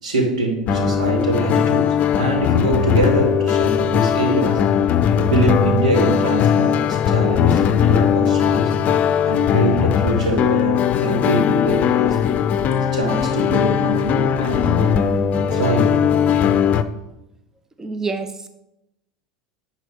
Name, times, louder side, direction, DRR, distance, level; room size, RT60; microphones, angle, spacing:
voice 1, 0.0-4.6 5.2-8.7 9.2-12.2 12.9-15.0 15.5-16.0, right 2 dB, 80° right, 0 dB, 2.4 m, -23 dB
sound 1, 0.7-16.8, left 8 dB, 40° left, 0.6 m, -19 dB
voice 2, 17.8-18.5, right 4 dB, 15° right, 8 dB, 0.6 m, -27 dB
11.0 x 4.2 x 5.2 m, 0.89 s
hypercardioid pair, 85°, 4 cm